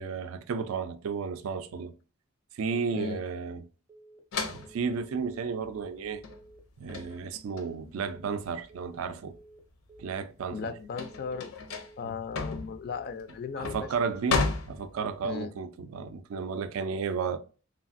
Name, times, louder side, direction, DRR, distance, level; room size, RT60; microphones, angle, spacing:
voice 1, 0.0-1.9 2.5-3.7 4.5-6.2 6.8-9.4 10.0-10.7 12.0-12.2 13.6-17.4, right 5 dB, 80° right, 0.4 m, -33 dB
Telephone, 3.3-3.6 3.9-4.2 4.5-4.8 5.1-5.4 5.7-6.0 6.3-6.6 6.9-7.2 7.5-7.8 8.1-8.4 8.7-9.0 9.3-9.6 9.9-10.2 10.5-10.8 11.1-11.4 11.7-12.0 12.3-12.6 12.9-13.2 13.5-13.8, right 2 dB, 10° right, 0.5 m, -54 dB
sound 1, 4.3-9.3 9.7-15.3, left 3 dB, 85° left, 0.6 m, -34 dB
voice 2, 10.5-11.5 12.0-13.7 15.2-15.5, left 5 dB, 50° left, 0.3 m, -36 dB
3.1 x 2.4 x 2.5 m
head